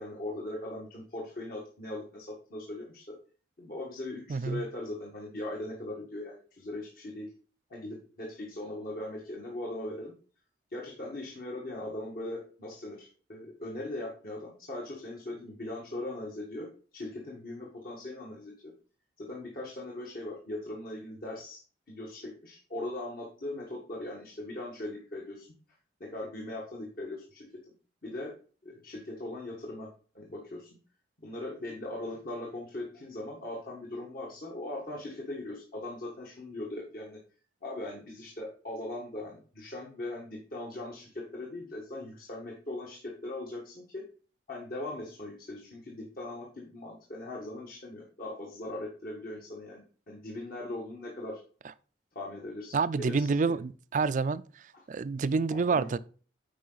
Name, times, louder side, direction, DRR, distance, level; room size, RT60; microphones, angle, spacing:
voice 1, 0.0-3.1 3.6-7.3 7.7-10.1 10.7-18.7 19.2-21.6 21.9-25.5 26.0-27.7 28.0-28.4 28.6-29.9 30.1-30.7 31.2-37.2 37.6-44.0 44.5-51.4 52.1-53.5 54.7-54.8 55.5-55.9, left 1 dB, 50° left, 1.5 m, -40 dB
voice 2, 4.3-4.6 52.7-54.4 54.9-56.0, right 4 dB, 45° right, 0.3 m, -28 dB
8.6 x 5.0 x 3.9 m
head